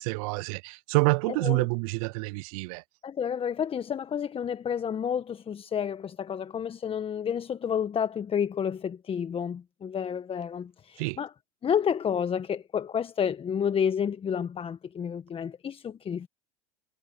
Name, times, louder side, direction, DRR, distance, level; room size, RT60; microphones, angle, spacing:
voice 1, 0.0-2.8 11.0-11.2, right 28 dB, 65° right, 0.7 m, -27 dB
voice 2, 3.0-11.3 11.6-16.3, left 8 dB, 30° left, 1.4 m, -30 dB
hypercardioid pair, 85°, 20 cm